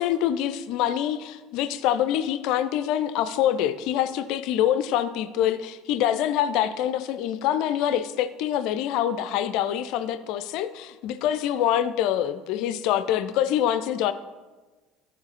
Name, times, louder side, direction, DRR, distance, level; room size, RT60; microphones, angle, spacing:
voice 1, 0.0-14.1, left 10 dB, 55° left, 12 dB, 0.3 m, -25 dB
8.2 x 4.7 x 4.0 m, 1.2 s
figure-of-eight pair, 65°, 0 cm